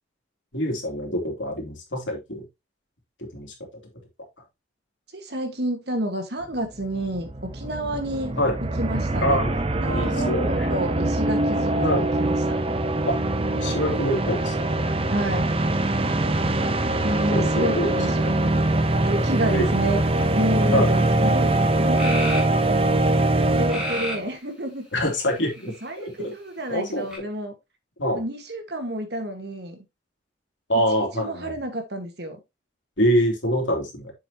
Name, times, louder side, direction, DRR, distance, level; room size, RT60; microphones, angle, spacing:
voice 1, 0.5-2.4 3.2-3.5 8.3-8.5 9.2-9.6 9.9-10.7 11.8-12.1 13.1-13.2 13.5-14.8 17.3-18.2 19.5-19.7 20.7-20.9 24.9-26.3 26.7-27.2 28.0-28.2 30.7-31.5 33.0-34.1, equal, 80° left, 3.0 m, -25 dB
voice 2, 5.1-8.3 8.8-9.4 9.7-12.6 15.1-15.5 17.0-18.6 19.0-20.0 20.3-22.4 23.5-24.9 25.8-27.5 28.1-29.8 30.9-32.4, right 1 dB, 60° right, 1.8 m, -30 dB
sound 1, 6.6-6.7 6.8-24.3, right 2 dB, 30° right, 0.6 m, -23 dB
sound 2, 21.3-21.4 22.0-22.5 23.7-24.3 25.1-25.8 27.1-27.2, equal, 5° right, 2.6 m, -31 dB
7.3 x 6.4 x 3.0 m
head